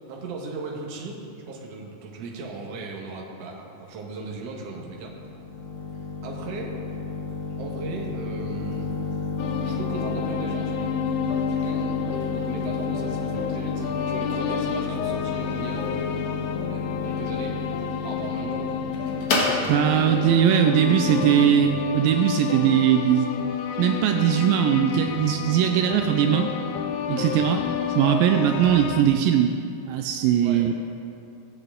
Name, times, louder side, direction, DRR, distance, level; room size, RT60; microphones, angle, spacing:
voice 1, 0.1-5.1 6.2-6.8 7.6-8.9 9.6-11.0 11.5-16.4 16.7-17.6 18.0-18.8 19.3-21.6 27.1-27.4 30.4-30.6, right 3 dB, 55° right, -1 dB, 2.0 m, -37 dB
sound 1, 4.3-21.8, left 3 dB, 60° left, 2.7 m, -31 dB
sound 2, 9.4-29.0, left 8 dB, 90° left, 1.7 m, -30 dB
voice 2, 19.7-23.5 23.8-26.5 27.1-27.6 28.0-29.6 29.9-30.7, right 9 dB, 80° right, 5 dB, 2.2 m, -20 dB
17.0 x 7.9 x 3.7 m, 2.6 s
omnidirectional pair, 4.1 m